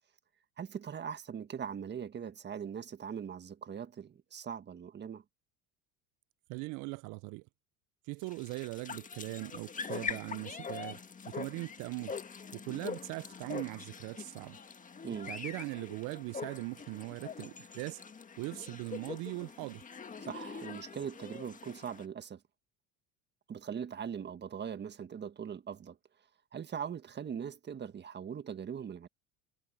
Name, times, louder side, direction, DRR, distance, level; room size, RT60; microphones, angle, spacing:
voice 1, 0.6-5.2 15.0-15.3 20.2-22.4 23.5-26.0 26.5-29.1, right 7 dB, 30° right, 1.6 m, -41 dB
voice 2, 6.5-7.4 8.1-11.0 11.3-12.1 12.5-14.6 15.3-18.0 18.4-19.8, right 25 dB, 60° right, 0.6 m, -40 dB
sound 1, 8.2-22.0, left 5 dB, 20° left, 1.7 m, -44 dB
supercardioid pair, 100°, 34 cm